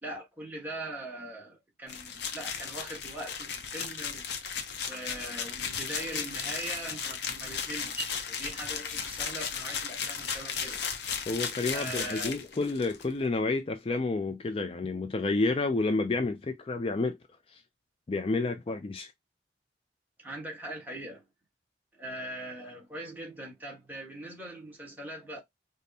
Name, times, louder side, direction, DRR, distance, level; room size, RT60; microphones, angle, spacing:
voice 1, 0.0-4.3 4.9-10.8 11.7-12.4 20.2-21.3 21.9-25.4, right 1 dB, 10° right, 1.3 m, -41 dB
sound 1, 1.9-13.1, left 6 dB, 70° left, 0.7 m, -35 dB
voice 2, 11.3-17.2 17.5-17.6 18.1-19.1, left 3 dB, 30° left, 0.4 m, -30 dB
5.2 x 2.1 x 2.7 m
head